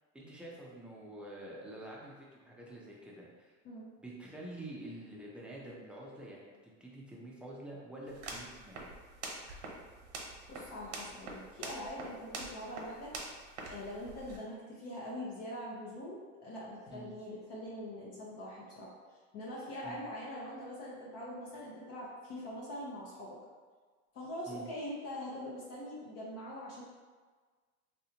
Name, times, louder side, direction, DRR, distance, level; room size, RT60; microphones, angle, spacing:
voice 1, 0.1-3.6 4.0-8.9 16.9-17.1 19.8-20.0 24.5-24.7, right 1 dB, 5° right, -4 dB, 0.5 m, -47 dB
sound 1, 8.1-14.4, right 3 dB, 90° right, 1.0 m, -45 dB
voice 2, 10.5-13.1 13.7-18.9 19.3-23.4 24.1-26.8, left 1 dB, 45° left, -5 dB, 0.8 m, -43 dB
3.3 x 2.6 x 2.8 m, 1.4 s
supercardioid pair, 120°, 33 cm